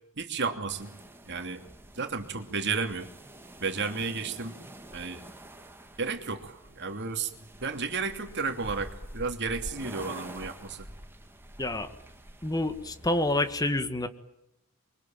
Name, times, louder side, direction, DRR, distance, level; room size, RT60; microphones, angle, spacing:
voice 1, 0.2-0.9 1.3-1.6 1.9-3.1 3.6-4.6 4.9-5.2 6.0-7.3 7.6-10.8, right 4 dB, 50° right, 6 dB, 2.8 m, -32 dB
sound 1, 0.7-13.5, right 1 dB, 10° right, 2.3 m, -47 dB
voice 2, 11.6-11.9 12.4-14.1, left 1 dB, 15° left, 9 dB, 1.7 m, -28 dB
25.5 x 24.0 x 9.0 m, 0.83 s
head